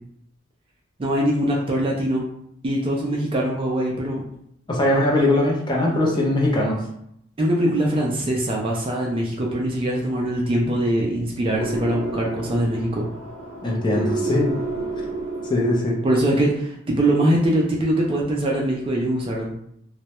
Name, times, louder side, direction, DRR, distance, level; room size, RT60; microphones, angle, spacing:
voice 1, 1.0-2.2 2.6-4.2 7.4-13.1 16.0-19.5, right 1 dB, 25° right, -2 dB, 0.3 m, -22 dB
voice 2, 4.7-6.8 13.6-14.5 15.5-16.0, left 1 dB, 20° left, -3 dB, 0.5 m, -20 dB
sound 1, 11.5-16.1, right 3 dB, 90° right, 0.5 m, -30 dB
2.2 x 2.0 x 2.9 m, 0.73 s
head